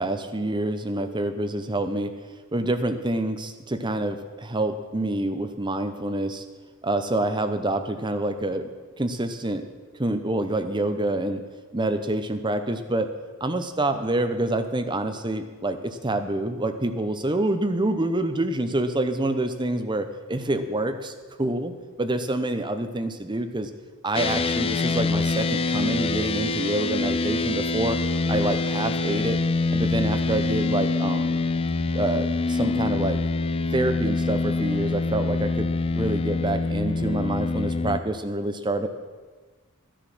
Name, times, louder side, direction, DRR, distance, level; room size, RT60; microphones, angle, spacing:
voice 1, 0.0-2.1 2.5-6.4 6.8-8.7 9.0-9.6 10.0-11.4 11.7-13.1 13.4-21.7 22.0-23.7 24.0-28.0 28.3-29.4 29.7-31.4 31.9-33.2 33.7-38.9, right 1 dB, 20° right, 8 dB, 0.8 m, -27 dB
sound 1, 24.1-38.0, left 3 dB, 25° left, 0.4 m, -25 dB
12.0 x 10.0 x 6.2 m, 1.4 s
head